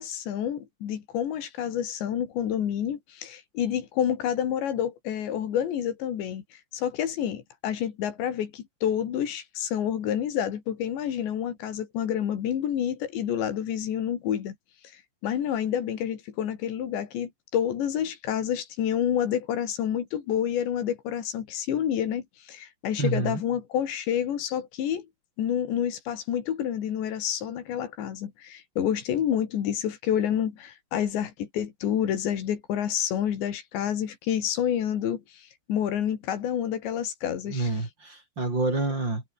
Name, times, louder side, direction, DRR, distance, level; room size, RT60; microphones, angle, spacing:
voice 1, 0.0-6.4 6.7-14.6 15.2-25.1 25.4-37.8, left 9 dB, 80° left, 4.9 m, -28 dB
voice 2, 23.0-23.4 37.5-39.2, right 2 dB, 25° right, 5.9 m, -28 dB
omnidirectional pair, 5.0 m